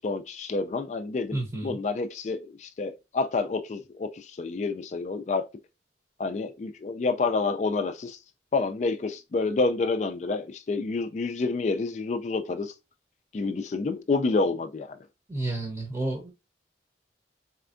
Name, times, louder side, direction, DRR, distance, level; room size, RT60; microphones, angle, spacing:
voice 1, 0.0-5.4 6.2-8.2 8.5-12.7 13.3-15.0, left 3 dB, 40° left, 0.3 m, -28 dB
voice 2, 1.3-1.8 15.3-16.3, right 2 dB, 20° right, 0.8 m, -31 dB
4.3 x 3.3 x 2.5 m
head